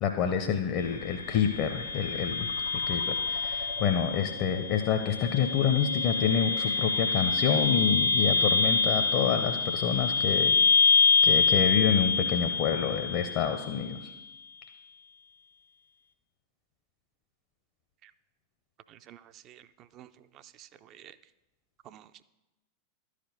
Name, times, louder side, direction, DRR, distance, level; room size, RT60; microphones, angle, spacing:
voice 1, 0.0-10.6 11.2-14.1, left 8 dB, 40° left, 5 dB, 0.6 m, -28 dB
sound 1, 0.8-13.8, left 4 dB, 75° left, 1.6 m, -26 dB
voice 2, 18.9-19.2 19.5-19.7 19.9-20.1 20.6-21.1 21.9-22.2, right 11 dB, 35° right, 12 dB, 0.4 m, -51 dB
11.5 x 5.0 x 6.6 m, 1.0 s
figure-of-eight pair, 90°, 0 cm